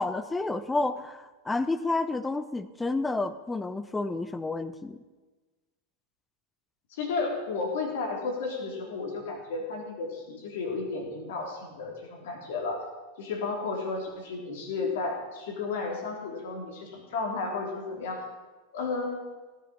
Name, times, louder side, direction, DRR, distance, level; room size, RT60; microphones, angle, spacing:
voice 1, 0.0-5.0, left 2 dB, 10° left, 14 dB, 0.6 m, -30 dB
voice 2, 6.9-12.8 13.2-18.2 18.7-19.2, left 4 dB, 55° left, 1 dB, 3.7 m, -33 dB
18.0 x 10.0 x 5.7 m, 1.3 s
figure-of-eight pair, 90°, 0 cm